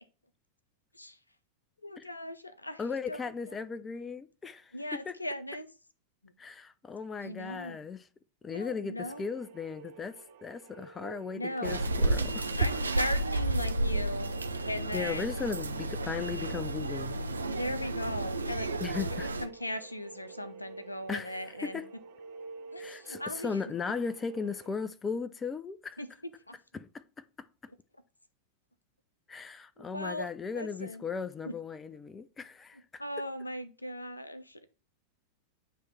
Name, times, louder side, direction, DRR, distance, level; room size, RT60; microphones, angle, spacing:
voice 1, 1.8-2.8 3.1-3.3 4.7-5.7 6.2-6.3 7.2-7.8 8.5-9.2 11.3-11.9 12.6-14.4 14.6-15.4 17.5-18.7 19.1-21.8 22.7-23.6 26.0-26.1 26.5-26.6 29.8-31.0 31.4-31.5 33.0-34.7, left 1 dB, 85° left, 0.7 m, -38 dB
voice 2, 2.8-5.1 6.4-8.1 8.4-12.5 14.9-17.3 18.8-19.3 21.1-21.9 22.8-26.0 26.7-26.9 27.4-27.5 29.3-33.0, left 5 dB, 15° left, 0.4 m, -37 dB
sound 1, 9.0-24.7, right 4 dB, 50° right, 1.0 m, -50 dB
sound 2, 11.6-19.5, right 2 dB, 75° right, 0.6 m, -31 dB
9.2 x 3.1 x 4.1 m
figure-of-eight pair, 90°, 0 cm